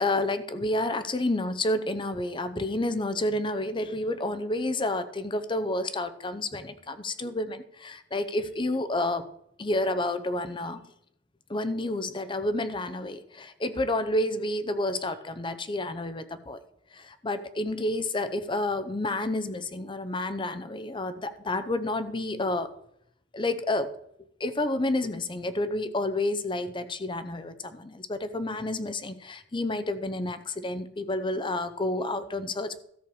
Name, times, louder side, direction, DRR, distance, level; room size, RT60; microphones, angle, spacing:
voice 1, 0.0-9.3 9.6-10.8 11.5-16.6 16.9-22.7 23.3-23.9 24.4-32.8, left 2 dB, 25° left, 12 dB, 0.7 m, -30 dB
13.5 x 6.7 x 4.7 m, 0.74 s
head